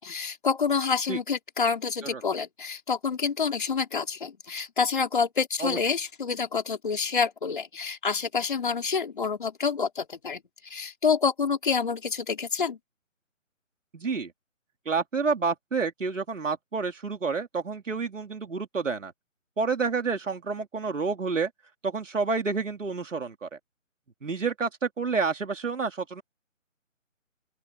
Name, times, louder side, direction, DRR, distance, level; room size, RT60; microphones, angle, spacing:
voice 1, 0.0-12.8, left 5 dB, 35° left, 4.7 m, -28 dB
voice 2, 13.9-14.3 14.9-19.1 19.6-21.5 21.8-23.6 24.2-26.2, right 4 dB, 65° right, 3.7 m, -29 dB
open air
hypercardioid pair, 180°, 40 cm